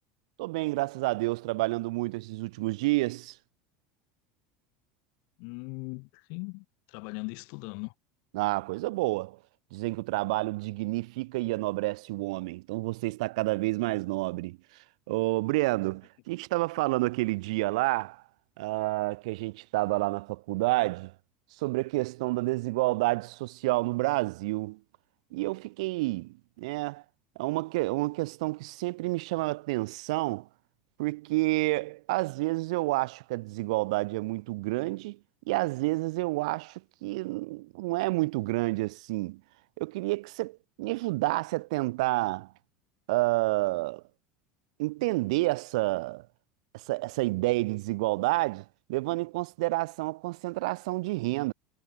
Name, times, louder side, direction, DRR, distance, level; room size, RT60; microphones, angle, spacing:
voice 1, 0.4-3.4 8.3-9.4 9.7-14.6 15.1-18.2 18.6-21.1 21.6-24.8 25.3-27.0 27.4-30.5 31.0-35.2 35.5-39.4 39.8-42.5 43.1-44.0 44.8-46.3 46.7-51.5, right 22 dB, 75° right, 1.8 m, -29 dB
voice 2, 5.4-7.9, left 38 dB, 55° left, 5.3 m, -39 dB
cardioid pair, 170°, 3 cm